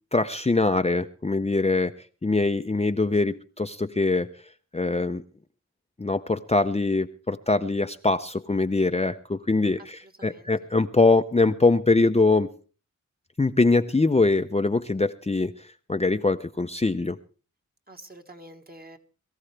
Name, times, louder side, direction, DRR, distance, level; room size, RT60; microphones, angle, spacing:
voice 1, 0.1-1.9 2.2-4.3 4.7-5.2 6.0-12.5 13.4-17.2, left 3 dB, 20° left, 8 dB, 0.6 m, -23 dB
voice 2, 9.8-10.5 17.9-19.0, right 1 dB, 30° right, 5 dB, 1.6 m, -47 dB
21.5 x 14.0 x 3.3 m, 0.37 s
cardioid pair, 50°, 29 cm